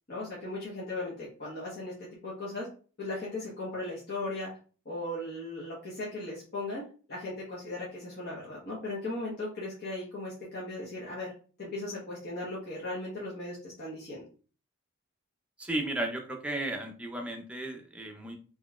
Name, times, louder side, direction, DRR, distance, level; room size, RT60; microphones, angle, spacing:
voice 1, 0.1-1.9 2.2-2.7 3.0-4.5 4.8-11.3 11.6-14.2, left 2 dB, 50° left, -6 dB, 1.1 m, -37 dB
voice 2, 15.6-18.4, right 1 dB, 5° right, 1 dB, 0.5 m, -34 dB
3.8 x 3.0 x 2.3 m, 0.39 s
head